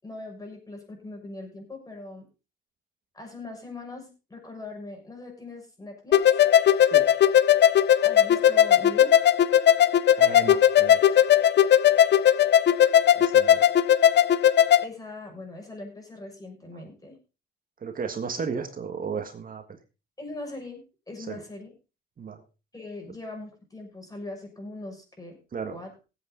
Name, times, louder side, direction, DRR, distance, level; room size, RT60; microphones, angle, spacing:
voice 1, 0.0-2.3 3.1-6.2 8.0-9.2 14.8-17.2 20.2-20.8 21.1-21.7 22.7-25.4 25.7-25.9, left 2 dB, 20° left, 2 dB, 6.5 m, -40 dB
sound 1, 6.1-14.8, left 10 dB, 60° left, 0.7 m, -18 dB
voice 2, 10.2-11.0 13.2-13.6 17.8-19.6 21.3-21.4 22.2-22.4 25.5-25.8, right 6 dB, 45° right, 5 dB, 1.7 m, -34 dB
18.0 x 8.4 x 3.9 m, 0.31 s
cardioid pair, 90°, 20 cm